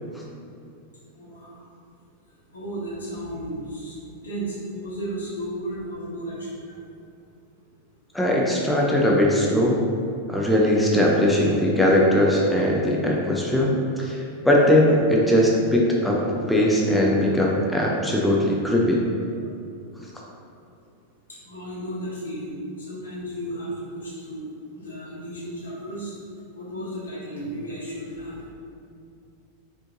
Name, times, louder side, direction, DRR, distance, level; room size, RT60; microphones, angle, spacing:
voice 1, 1.2-1.5 2.5-6.8 21.5-24.5 24.7-26.1 26.5-28.5, right 1 dB, 75° left, -7 dB, 1.4 m, -34 dB
voice 2, 8.1-9.8 10.3-16.2 16.5-19.0, left 1 dB, 5° left, -3 dB, 0.6 m, -20 dB
5.3 x 3.6 x 2.7 m, 2.6 s
figure-of-eight pair, 90°, 0 cm